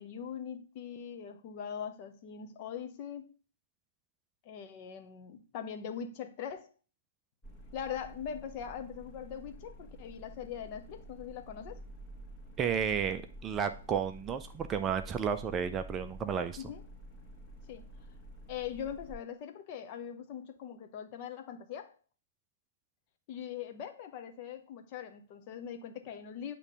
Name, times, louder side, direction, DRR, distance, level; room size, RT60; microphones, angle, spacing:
voice 1, 0.0-3.2 4.4-6.7 7.7-11.8 16.6-16.8 17.7-17.9 18.5-21.9 23.3-26.5, left 8 dB, 40° left, 0.9 m, -41 dB
sound 1, 7.4-19.1, right 1 dB, 15° left, 1.4 m, -49 dB
voice 2, 12.6-16.6, right 7 dB, 20° right, 0.5 m, -32 dB
8.1 x 3.1 x 5.3 m
figure-of-eight pair, 115°, 0 cm